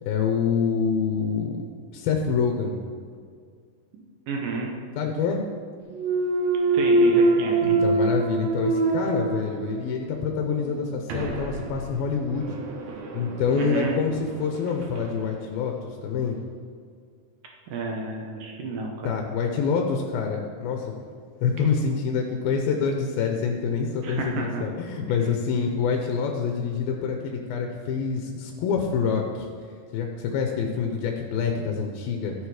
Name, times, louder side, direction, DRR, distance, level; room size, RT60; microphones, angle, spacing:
voice 1, 0.0-1.6 1.9-2.8 5.0-5.4 7.6-12.6 13.1-16.4 19.0-20.9 21.4-29.5 29.9-32.3, left 6 dB, 90° left, 3 dB, 2.7 m, -26 dB
voice 2, 3.9-4.7 6.7-7.8 13.6-14.0 17.7-19.2 24.0-24.7, right 4 dB, 70° right, 0 dB, 2.6 m, -31 dB
Thump thud, 5.9-10.0 10.4-15.1, right 3 dB, 85° right, 3.1 m, -25 dB
13.0 x 7.7 x 4.9 m, 2.1 s
omnidirectional pair, 4.1 m